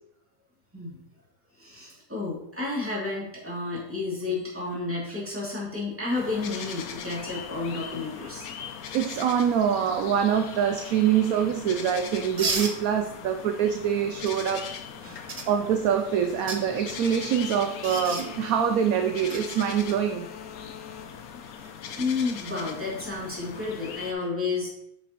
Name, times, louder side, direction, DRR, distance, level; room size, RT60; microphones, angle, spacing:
voice 1, 1.6-8.5 15.0-15.3 22.0-24.7, left 3 dB, 10° right, -7 dB, 2.8 m, -31 dB
sound 1, 6.1-24.1, left 7 dB, 70° left, 1.1 m, -40 dB
voice 2, 8.9-14.7 15.1-20.3, right 8 dB, 70° right, 7 dB, 0.9 m, -25 dB
sound 2, 12.4-12.8 14.3-14.4 15.3-15.5 16.3-16.6 17.8-18.3 19.3-19.4 21.5-21.7, right 3 dB, 35° right, 0.6 m, -30 dB
7.9 x 5.9 x 3.0 m, 0.77 s
omnidirectional pair, 1.7 m